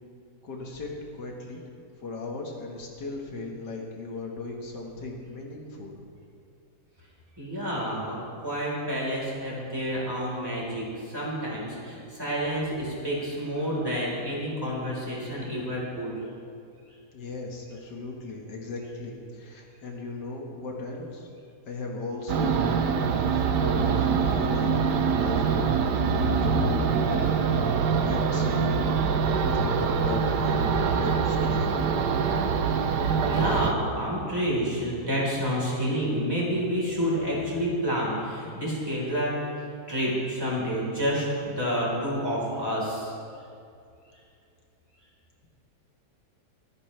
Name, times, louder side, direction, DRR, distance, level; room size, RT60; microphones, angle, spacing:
voice 1, 0.4-1.6 2.0-6.1 17.1-21.3 21.7-25.7 26.6-27.7 28.0-29.0 29.3-31.8, left 3 dB, 90° left, 0 dB, 2.3 m, -37 dB
voice 2, 7.4-8.2 8.4-16.1 33.2-39.3 39.9-43.1, equal, 15° right, -6 dB, 4.1 m, -29 dB
sound 1, 22.3-33.7, right 5 dB, 80° right, 1.4 m, -24 dB
25.0 x 9.6 x 3.3 m, 2.5 s
omnidirectional pair, 1.8 m